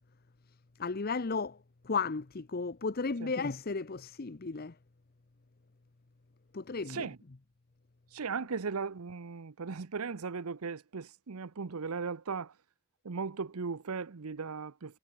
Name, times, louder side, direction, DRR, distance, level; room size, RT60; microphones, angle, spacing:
voice 1, 0.8-1.6 1.8-4.7 6.5-7.1, left 4 dB, 45° left, 0.7 m, -34 dB
voice 2, 6.9-7.2 8.1-12.5 13.0-15.0, right 5 dB, 90° right, 0.8 m, -37 dB
head